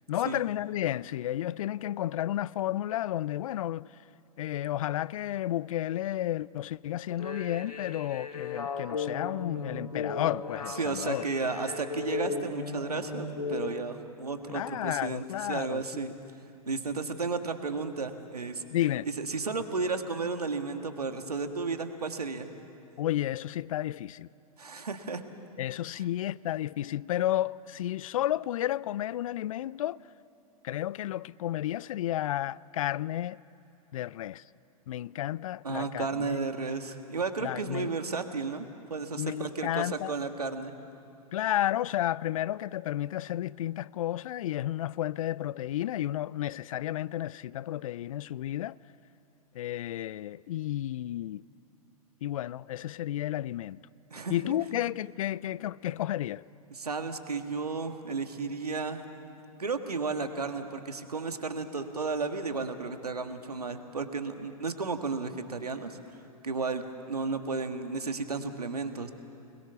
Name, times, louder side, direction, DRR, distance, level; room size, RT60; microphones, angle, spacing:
voice 1, 0.1-3.9 4.4-11.2 14.5-16.1 18.7-19.1 23.0-24.3 25.6-30.0 30.6-33.4 33.9-34.4 34.9-36.4 37.4-37.9 39.2-40.1 41.3-48.7 49.6-51.4 52.2-53.8 54.3-56.4, left 13 dB, 60° left, 0.5 m, -32 dB
sound 1, 7.1-13.8, left 4 dB, 85° left, 2.2 m, -36 dB
voice 2, 10.7-16.1 16.7-18.6 19.1-22.5 24.6-25.2 25.9-26.1 35.6-38.6 38.9-40.7 54.1-54.5 56.7-59.0 59.6-66.0 66.4-69.1, right 4 dB, 90° right, 1.8 m, -33 dB
29.5 x 21.0 x 7.0 m
hypercardioid pair, 110°, 19 cm